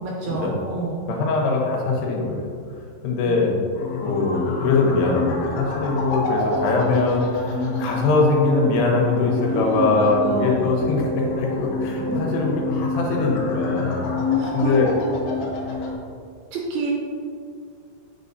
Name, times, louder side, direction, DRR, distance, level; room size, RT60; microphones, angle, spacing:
voice 1, 0.0-1.0 3.2-3.4 9.5-10.7 12.0-12.3 14.4-14.7 16.5-16.9, right 3 dB, 80° right, -2 dB, 2.6 m, -28 dB
voice 2, 1.1-2.6 3.0-3.5 4.0-14.0 14.5-14.9, left 3 dB, 85° left, -1 dB, 3.1 m, -22 dB
sound 1, 3.7-15.9, left 3 dB, 70° left, 2.2 m, -27 dB
8.1 x 5.8 x 2.7 m, 2.3 s
omnidirectional pair, 4.6 m